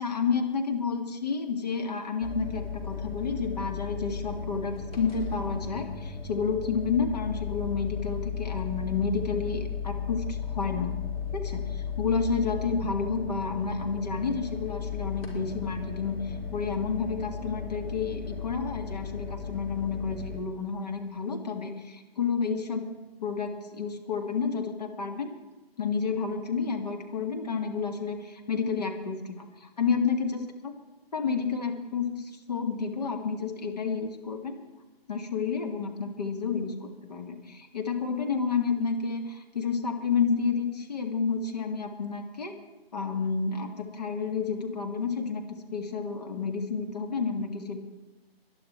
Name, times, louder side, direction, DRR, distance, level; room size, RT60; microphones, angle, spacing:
voice 1, 0.0-11.0 11.3-22.9 23.2-25.3 25.8-30.7 31.1-34.6 35.1-42.5 42.9-45.4 45.7-47.8, left 5 dB, 40° left, 3 dB, 1.9 m, -30 dB
sound 1, 2.2-20.4, left 6 dB, 70° left, 4.2 m, -35 dB
19.5 x 11.5 x 4.4 m, 1.2 s
figure-of-eight pair, 160°, 31 cm